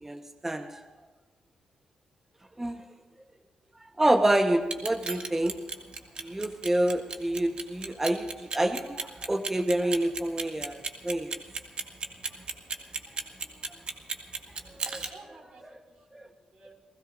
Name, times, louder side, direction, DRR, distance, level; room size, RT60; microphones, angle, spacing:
voice 1, 0.0-0.8 2.6-2.8 4.0-5.5 6.2-11.4 14.6-15.0 16.1-16.3, right 1 dB, 15° right, 6 dB, 1.0 m, -27 dB
Clock, 4.6-15.1, right 4 dB, 50° right, 1.8 m, -34 dB
voice 2, 12.7-13.7 15.0-16.7, right 3 dB, 80° right, 1 dB, 5.1 m, -55 dB
30.0 x 17.0 x 2.6 m, 1.3 s
cardioid pair, 75°, 2 cm